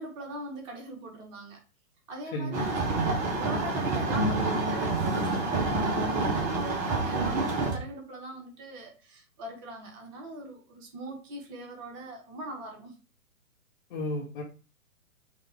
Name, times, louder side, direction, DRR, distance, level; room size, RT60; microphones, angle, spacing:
voice 1, 0.0-1.6 2.1-2.8 3.3-12.9, right 1 dB, 35° right, 1 dB, 1.6 m, -40 dB
voice 2, 2.3-2.7 13.9-14.4, left 1 dB, 40° left, -2 dB, 1.1 m, -33 dB
sound 1, 2.5-7.7, right 2 dB, 20° right, 1.1 m, -28 dB
5.1 x 2.6 x 3.5 m, 0.34 s
figure-of-eight pair, 120°, 40 cm